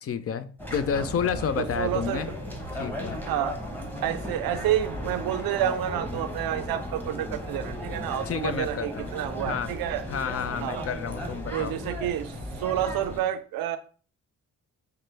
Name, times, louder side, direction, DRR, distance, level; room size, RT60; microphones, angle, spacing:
voice 1, 0.0-2.3 2.7-3.2 8.3-9.1 9.4-9.7 10.1-11.8, left 7 dB, 45° left, 0.4 m, -30 dB
sound 1, 0.6-13.2, equal, 5° left, 1.0 m, -35 dB
voice 2, 1.8-2.2 3.3-3.6 4.0-10.0 10.6-10.9 11.5-13.8, right 11 dB, 90° right, 0.5 m, -29 dB
5.6 x 2.2 x 3.3 m
cardioid pair, 80°, 35 cm